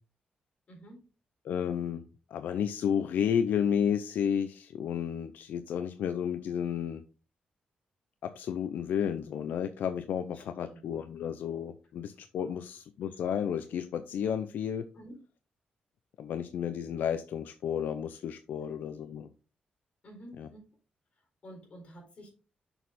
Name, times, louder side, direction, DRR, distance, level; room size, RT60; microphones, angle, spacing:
voice 1, 1.5-2.0 2.3-7.0 8.2-14.8 16.2-19.3 20.4-20.5, left 8 dB, 85° left, 10 dB, 0.5 m, -32 dB
voice 2, 10.3-10.8 14.9-15.2 18.9-19.0 20.0-20.7 21.4-22.3, equal, 45° left, 1 dB, 4.2 m, -49 dB
6.9 x 6.2 x 3.7 m, 0.33 s
wide cardioid pair, 135°, 3 cm